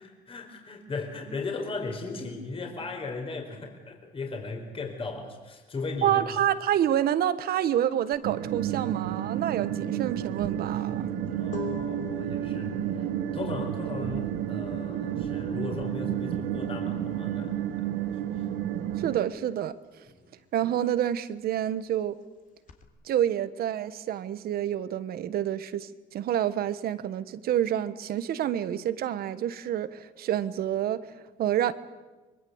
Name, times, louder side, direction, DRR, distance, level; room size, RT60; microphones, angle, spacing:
voice 1, 0.0-6.2 11.3-13.1 13.3-18.5 20.1-20.3, left 3 dB, 35° left, 4.5 m, -37 dB
voice 2, 6.0-11.1 19.0-20.0 20.5-22.2 23.0-31.7, right 11 dB, 65° right, 1.4 m, -28 dB
sound 1, 8.1-18.4 18.6-22.8, left 6 dB, 50° left, 3.2 m, -46 dB
sound 2, 8.2-19.2, right 10 dB, 90° right, 1.6 m, -31 dB
25.0 x 23.0 x 8.1 m
cardioid pair, 110°, 17 cm